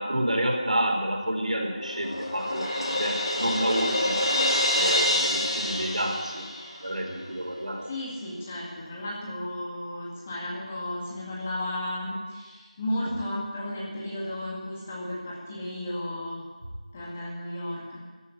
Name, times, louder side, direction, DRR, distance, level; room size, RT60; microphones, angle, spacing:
voice 1, 0.0-4.3 4.7-6.4 6.8-7.9, right 1 dB, 65° right, 0 dB, 4.8 m, -29 dB
Crash cymbal, 1.3-7.0, left 1 dB, 45° left, 3.5 m, -27 dB
voice 2, 7.8-16.5 16.9-18.0, left 1 dB, 15° left, -5 dB, 1.9 m, -34 dB
15.0 x 8.2 x 9.6 m, 1.3 s
figure-of-eight pair, 175°, 4 cm